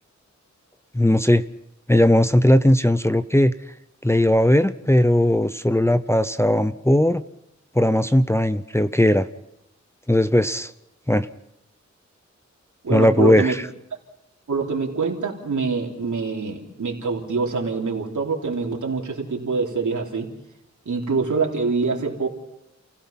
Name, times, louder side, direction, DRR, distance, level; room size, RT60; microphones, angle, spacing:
voice 1, 0.9-1.4 1.9-3.5 4.0-7.2 7.7-9.3 10.1-10.7 11.1-11.3 12.9-13.6, left 1 dB, 10° left, 10 dB, 0.7 m, -18 dB
voice 2, 12.8-13.5 14.5-20.3 20.9-22.3, right 4 dB, 85° right, 0 dB, 3.5 m, -25 dB
29.0 x 17.0 x 5.8 m, 0.82 s
wide cardioid pair, 90°, 29 cm